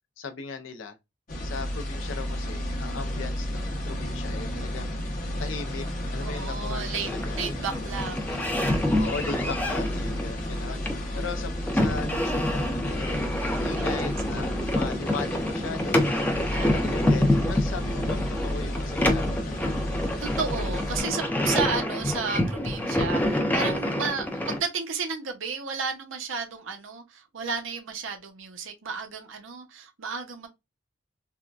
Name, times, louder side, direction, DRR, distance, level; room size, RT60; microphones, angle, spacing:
voice 1, 0.2-1.0 1.4-5.0 5.4-7.4 8.9-10.9 11.1-13.2 13.5-16.3 16.7-19.8 24.4-24.6, left 4 dB, 75° left, 0.5 m, -38 dB
sound 1, 1.3-21.0, equal, 45° left, 0.8 m, -32 dB
voice 2, 6.2-9.0 10.1-10.4 13.6-14.0 16.5-16.8 18.0-18.3 20.2-30.5, right 5 dB, 80° right, 0.7 m, -33 dB
sound 2, 7.0-24.6, left 1 dB, 10° left, 0.5 m, -27 dB
3.6 x 2.2 x 2.3 m
head